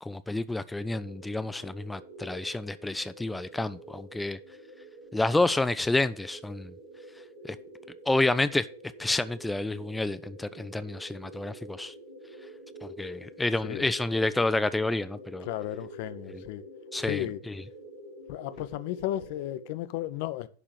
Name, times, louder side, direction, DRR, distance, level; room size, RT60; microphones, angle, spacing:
voice 1, 0.0-4.4 5.1-6.7 7.4-7.6 8.1-8.7 9.0-11.9 12.8-15.5 16.3-16.4 16.9-17.6, left 2 dB, 5° left, 0.4 m, -29 dB
sound 1, 0.8-19.8, right 1 dB, 65° right, 2.2 m, -47 dB
voice 2, 15.5-16.6 17.0-17.4 18.3-20.5, left 14 dB, 50° left, 0.7 m, -34 dB
11.0 x 3.7 x 7.4 m
figure-of-eight pair, 90°, 0 cm